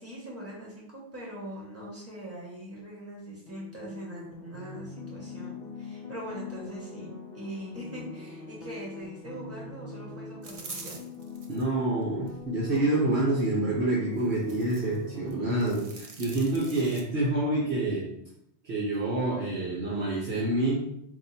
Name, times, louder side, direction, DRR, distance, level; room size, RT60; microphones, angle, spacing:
voice 1, 0.0-7.1 7.3-11.0, equal, 15° right, -5 dB, 1.4 m, -42 dB
sound 1, 3.5-15.5, left 4 dB, 65° left, 0.8 m, -43 dB
sound 2, 10.4-11.6 12.2-12.8 14.2-15.0 15.3-17.0, right 3 dB, 45° right, 0.5 m, -45 dB
voice 2, 11.5-18.1 18.6-20.8, right 2 dB, 70° right, -7 dB, 1.3 m, -27 dB
4.8 x 2.3 x 4.2 m, 0.76 s
omnidirectional pair, 1.1 m